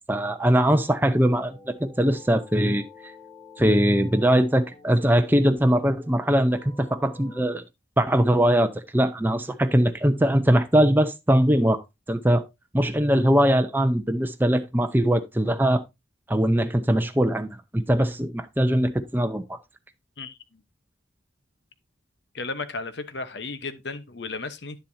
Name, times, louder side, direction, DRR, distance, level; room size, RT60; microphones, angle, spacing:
voice 1, 0.1-2.8 3.6-7.6 8.0-11.8 12.1-12.4 12.7-15.8 16.3-17.5 17.7-19.6, equal, 10° right, 0.7 m, -21 dB
sound 1, 1.0-7.4, left 4 dB, 20° left, 3.1 m, -49 dB
voice 2, 22.3-24.8, left 3 dB, 60° left, 1.0 m, -34 dB
10.5 x 7.4 x 2.7 m
head